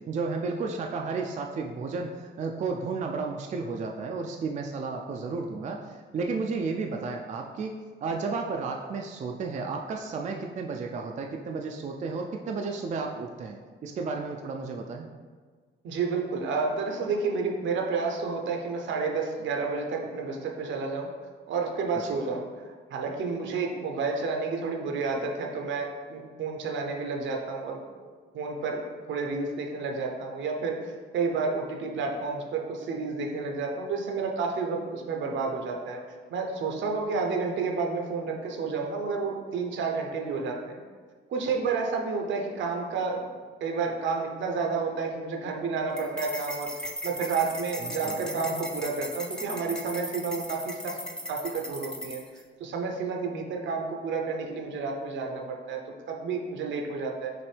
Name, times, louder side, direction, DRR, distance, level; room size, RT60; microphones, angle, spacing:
voice 1, 0.1-15.1 22.1-22.2 47.8-48.3, right 4 dB, 40° right, 2 dB, 0.4 m, -33 dB
voice 2, 15.8-21.1 21.5-36.0 36.3-40.8 41.3-43.3 43.6-46.7 47.0-51.0 51.3-52.2 52.6-55.8 56.1-57.3, right 4 dB, 70° right, 2 dB, 0.7 m, -30 dB
sound 1, 46.0-52.4, equal, 5° left, 0.6 m, -37 dB
5.9 x 2.6 x 3.3 m, 1.5 s
cardioid pair, 90°, 20 cm